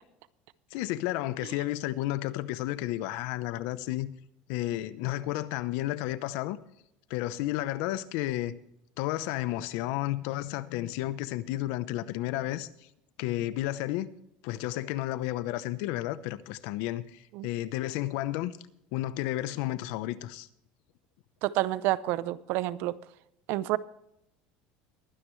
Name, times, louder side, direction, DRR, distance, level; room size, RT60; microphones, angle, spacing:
voice 1, 0.7-4.1 4.5-6.6 7.1-8.5 9.0-12.7 13.2-14.1 14.4-18.6 18.9-20.5, left 15 dB, 70° left, 0.8 m, -32 dB
voice 2, 21.4-22.9 23.5-23.8, right 16 dB, 60° right, 0.6 m, -28 dB
22.0 x 9.8 x 3.2 m
supercardioid pair, 130°, 4 cm